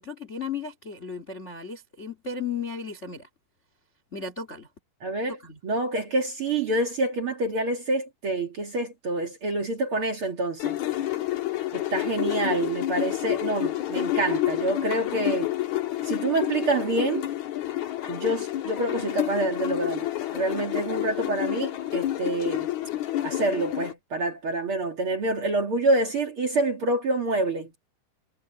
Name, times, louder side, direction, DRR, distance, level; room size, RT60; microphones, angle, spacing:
voice 1, 0.0-3.3 4.1-4.7 5.4-5.6, left 5 dB, 30° left, 1.4 m, -35 dB
voice 2, 5.0-5.4 5.6-10.8 11.7-15.5 16.0-17.3 18.1-22.7 23.2-27.7, right 2 dB, 40° right, 2.3 m, -27 dB
sound 1, 10.6-23.9, left 14 dB, 60° left, 2.4 m, -29 dB
omnidirectional pair, 4.5 m